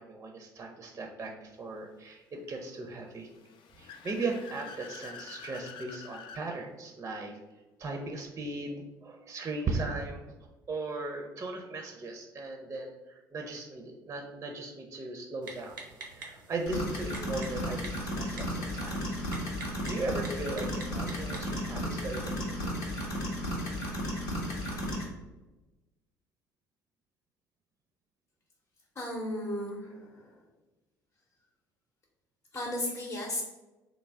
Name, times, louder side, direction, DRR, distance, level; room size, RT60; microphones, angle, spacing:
voice 1, 0.0-3.3 3.8-7.4 7.8-10.2 10.7-15.8 16.1-19.3 19.8-22.7, right 3 dB, 25° right, 3 dB, 0.4 m, -37 dB
Car / Accelerating revving vroom, 3.2-6.5, left 5 dB, 50° left, 0.3 m, -47 dB
Typing, 15.4-21.6, right 3 dB, 90° right, 0.5 m, -48 dB
sound 1, 16.7-25.0, equal, 75° left, 0.8 m, -34 dB
voice 2, 29.0-30.3 32.5-33.4, left 1 dB, 25° left, -4 dB, 0.7 m, -35 dB
3.3 x 2.0 x 3.3 m, 1.1 s
hypercardioid pair, 55°, 11 cm